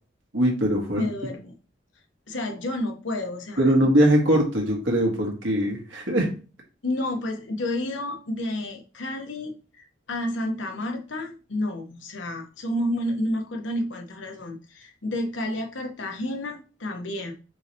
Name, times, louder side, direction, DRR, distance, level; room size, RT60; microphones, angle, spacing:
voice 1, 0.3-1.0 3.6-6.3, right 1 dB, 90° right, 1.6 m, -21 dB
voice 2, 0.9-1.5 2.3-3.9 6.8-17.3, left 1 dB, 80° left, 1.0 m, -30 dB
5.4 x 3.3 x 2.8 m
head